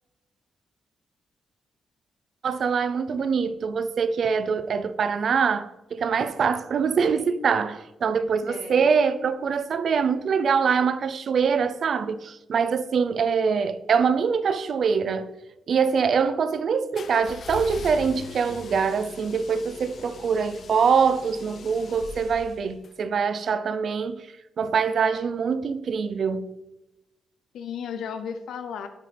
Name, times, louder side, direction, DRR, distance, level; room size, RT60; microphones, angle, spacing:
voice 1, 2.4-15.3 15.7-24.3 24.6-26.5, right 6 dB, 50° right, 0.5 m, -24 dB
voice 2, 8.5-8.9 27.5-28.9, left 7 dB, 90° left, 0.6 m, -34 dB
sound 1, 17.0-22.9, left 5 dB, 50° left, 0.5 m, -41 dB
10.0 x 8.1 x 3.4 m
wide cardioid pair, 155°, 0 cm